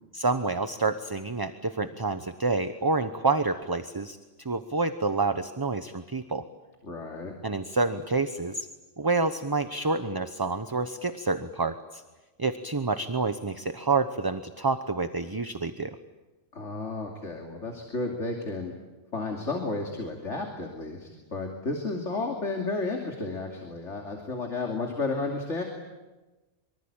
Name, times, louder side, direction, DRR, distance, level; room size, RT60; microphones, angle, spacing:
voice 1, 0.1-4.2 4.4-6.4 7.4-8.7 9.0-12.0 12.4-16.0, right 3 dB, 20° right, 9 dB, 0.9 m, -28 dB
voice 2, 6.8-7.3 16.5-18.7 19.1-25.6, left 3 dB, 80° left, 1 dB, 3.1 m, -32 dB
25.0 x 24.5 x 8.9 m, 1.2 s
omnidirectional pair, 1.2 m